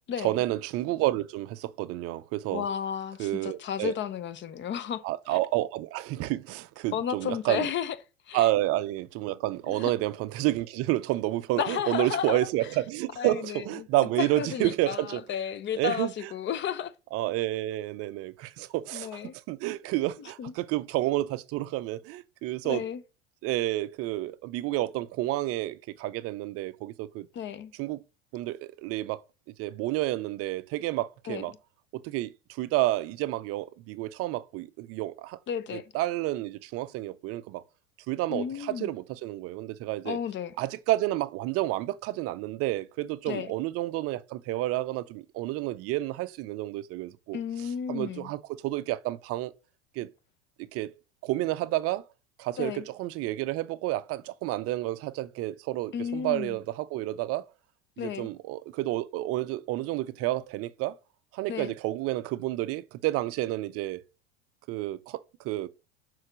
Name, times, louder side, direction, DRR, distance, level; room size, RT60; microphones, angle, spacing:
voice 1, 0.2-2.7 3.2-3.9 5.0-7.7 8.3-15.2 15.8-16.1 17.1-19.2 19.5-22.8 23.4-27.3 27.8-28.0 28.3-29.2 29.6-31.5 31.9-35.4 35.9-37.6 38.1-40.2 40.6-47.4 47.9-49.5 50.0-50.1 50.7-50.9 51.2-52.1 52.4-57.4 58.0-61.0 61.3-64.0 64.7-65.7, right 16 dB, 40° right, 0.5 m, -30 dB
voice 2, 2.5-5.4 6.9-8.0 8.3-8.5 9.7-9.9 11.6-12.5 13.2-13.9 14.2-16.9 18.9-19.3 20.2-20.5 22.6-23.0 27.3-27.7 31.3-31.4 35.5-35.9 38.3-38.9 40.0-40.5 43.3-43.5 47.3-48.3 52.6-52.8 55.9-56.6 58.0-58.3 61.5-61.7, left 8 dB, 30° left, 0.7 m, -33 dB
6.5 x 4.0 x 6.1 m
hypercardioid pair, 85°, 36 cm